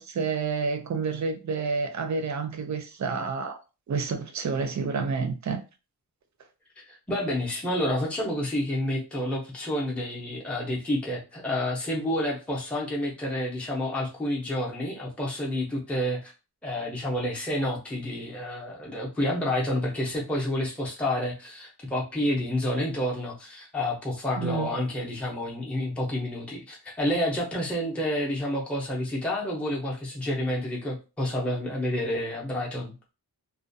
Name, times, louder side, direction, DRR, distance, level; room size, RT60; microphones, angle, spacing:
voice 1, 0.0-3.6 3.9-5.6 24.4-24.7, right 4 dB, 45° right, 0.5 m, -29 dB
voice 2, 6.8-16.3 16.6-32.9, left 1 dB, 5° left, 0.6 m, -29 dB
2.4 x 2.1 x 2.6 m
wide cardioid pair, 140°, 39 cm